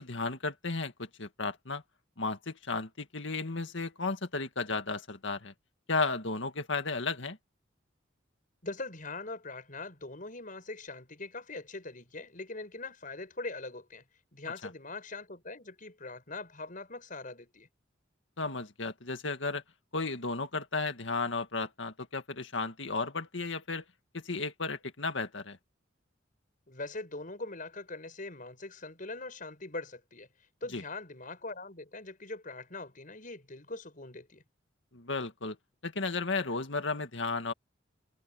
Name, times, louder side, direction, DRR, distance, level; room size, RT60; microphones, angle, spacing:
voice 1, 0.0-1.8 2.2-5.5 5.9-7.4 18.4-19.6 19.9-23.8 24.1-25.6 30.7-30.8 34.9-35.6 35.8-37.5, left 3 dB, 75° left, 2.0 m, -34 dB
voice 2, 8.6-14.0 14.3-17.7 26.7-30.3 30.6-34.4, left 3 dB, 45° left, 6.4 m, -42 dB
head